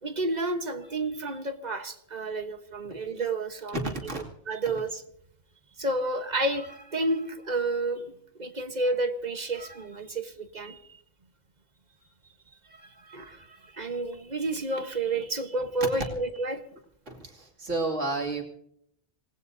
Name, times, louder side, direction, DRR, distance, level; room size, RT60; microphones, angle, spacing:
voice 1, 0.0-3.9 4.5-5.0 5.8-8.1 8.4-11.0 12.8-16.7, right 2 dB, 40° right, 1.2 m, -30 dB
voice 2, 3.7-4.2 17.1-18.4, right 2 dB, 80° right, 2.9 m, -31 dB
26.5 x 19.0 x 2.7 m
omnidirectional pair, 1.2 m